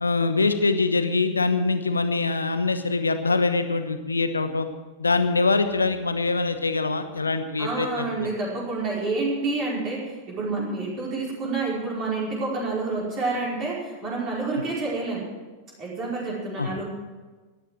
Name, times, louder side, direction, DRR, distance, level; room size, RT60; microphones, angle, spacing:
voice 1, 0.0-4.7 5.0-8.3 16.6-16.7, left 3 dB, 80° left, 9 dB, 1.0 m, -24 dB
voice 2, 7.6-15.3 15.8-16.8, right 3 dB, 35° right, -5 dB, 5.1 m, -28 dB
13.5 x 10.5 x 7.6 m, 1.3 s
figure-of-eight pair, 90°, 0 cm